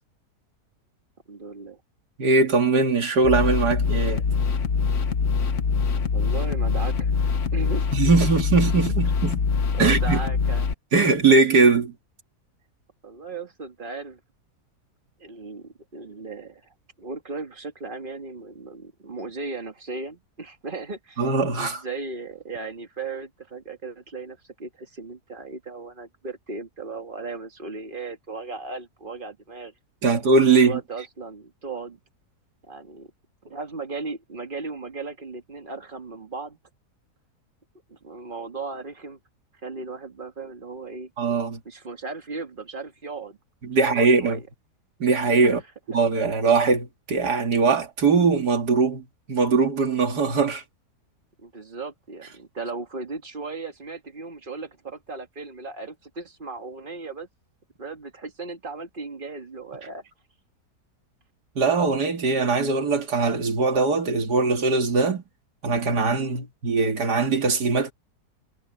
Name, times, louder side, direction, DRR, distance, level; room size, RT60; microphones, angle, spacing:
voice 1, 1.3-1.8 6.1-7.1 7.5-8.2 8.9-9.0 9.7-10.7 13.0-14.2 15.2-16.6 17.0-29.7 30.6-32.0 32.7-33.1 33.4-36.6 37.9-39.2 39.6-41.1 41.7-43.4 43.7-44.4 45.4-45.6 51.4-57.3 57.8-60.0 66.2-66.5, right 3 dB, 30° right, 2.0 m, -36 dB
voice 2, 2.2-4.2 7.9-9.4 9.8-10.2 10.9-11.9 21.2-21.8 30.0-30.8 41.2-41.6 43.6-44.4 45.0-45.6 45.9-50.6 61.6-65.2 65.6-67.9, right 4 dB, 80° right, 2.7 m, -21 dB
sound 1, 3.2-10.7, left 5 dB, 50° left, 1.3 m, -24 dB
omnidirectional pair, 1.7 m